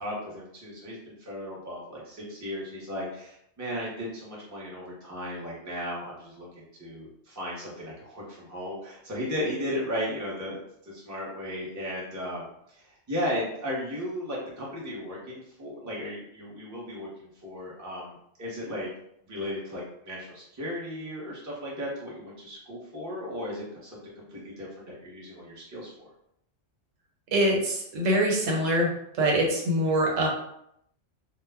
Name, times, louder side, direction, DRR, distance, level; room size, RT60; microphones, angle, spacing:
voice 1, 0.0-18.9 19.2-26.1, equal, 20° right, -5 dB, 0.6 m, -36 dB
voice 2, 27.3-28.9 29.2-30.3, right 1 dB, 85° right, -1 dB, 1.1 m, -24 dB
2.3 x 2.0 x 3.4 m, 0.75 s
omnidirectional pair, 1.3 m